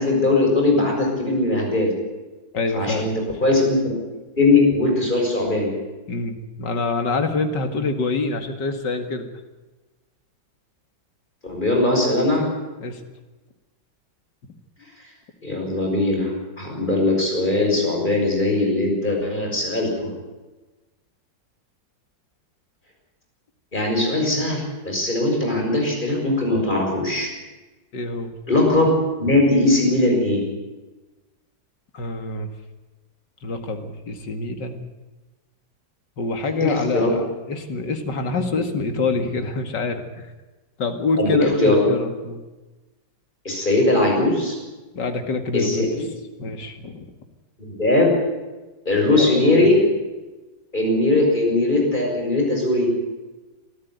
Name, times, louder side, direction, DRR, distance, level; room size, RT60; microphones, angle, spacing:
voice 1, 0.0-1.9 2.7-3.1 3.4-4.0 4.4-5.7 11.4-12.5 15.4-20.1 23.7-27.3 28.5-28.9 29.1-30.4 36.6-37.1 41.2-41.8 43.4-44.6 45.5-45.9 47.6-48.1 48.8-49.8 50.7-52.9, left 2 dB, 25° left, 0 dB, 6.7 m, -20 dB
voice 2, 2.5-3.1 6.1-9.3 12.8-13.0 27.9-28.3 31.9-32.5 33.4-34.8 36.2-37.2 37.5-40.3 40.8-42.4 44.9-45.9 46.4-47.1 49.1-49.6, left 3 dB, 70° left, 7 dB, 2.7 m, -26 dB
23.5 x 14.0 x 9.4 m, 1.2 s
omnidirectional pair, 2.0 m